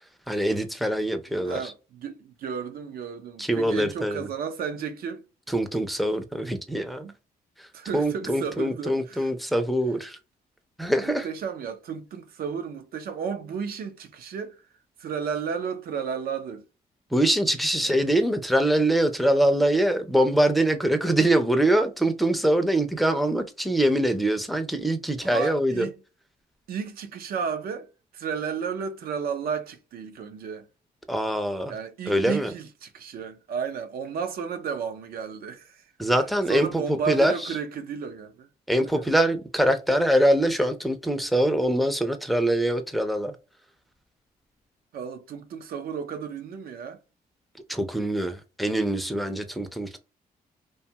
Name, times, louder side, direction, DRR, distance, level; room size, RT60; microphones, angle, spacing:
voice 1, 0.3-1.7 3.4-4.3 5.5-7.1 7.9-10.2 10.8-11.3 17.1-25.9 31.1-31.7 32.1-32.5 36.0-37.5 38.7-43.3 47.7-50.0, right 1 dB, ahead, 0.5 m, -23 dB
voice 2, 1.3-5.2 7.0-7.1 7.7-9.3 11.0-14.6 15.0-16.6 17.8-18.0 25.2-25.9 26.7-27.9 28.1-30.7 31.7-35.8 36.5-38.5 38.8-39.1 44.9-47.0, right 6 dB, 70° right, 0.6 m, -33 dB
2.6 x 2.3 x 2.8 m
cardioid pair, 85°, 16 cm